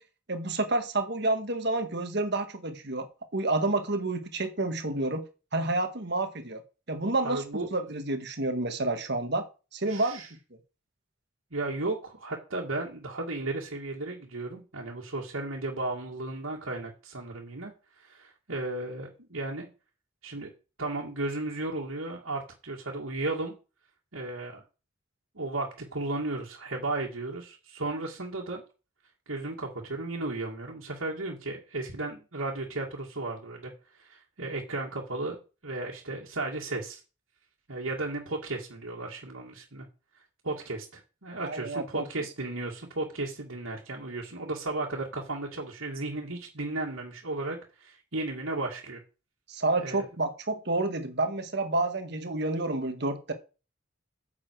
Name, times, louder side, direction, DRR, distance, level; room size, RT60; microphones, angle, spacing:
voice 1, 0.3-3.1 3.3-5.2 5.5-6.6 6.9-9.4 9.7-10.2 41.4-42.0 49.5-53.3, right 2 dB, 55° right, 1.7 m, -29 dB
voice 2, 7.2-7.7 9.9-10.3 11.5-19.7 20.2-20.5 20.8-23.5 24.1-24.6 25.3-28.6 29.3-33.7 34.0-35.4 35.6-37.0 37.7-39.9 40.4-49.0 49.8-50.1, right 2 dB, 80° right, 2.3 m, -34 dB
9.7 x 7.3 x 4.8 m
head